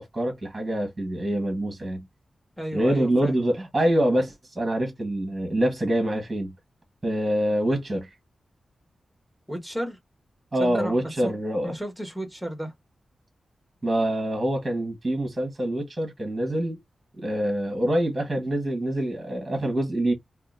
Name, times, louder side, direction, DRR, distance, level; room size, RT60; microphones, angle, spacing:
voice 1, 0.0-2.0 2.7-6.5 7.0-8.1 10.5-11.7 13.8-16.8 17.2-20.1, right 1 dB, 20° right, 1.2 m, -25 dB
voice 2, 2.6-3.3 9.5-10.0 10.6-11.3 11.6-12.7, equal, ahead, 1.2 m, -33 dB
2.8 x 2.4 x 3.6 m
wide cardioid pair, 160°, 0 cm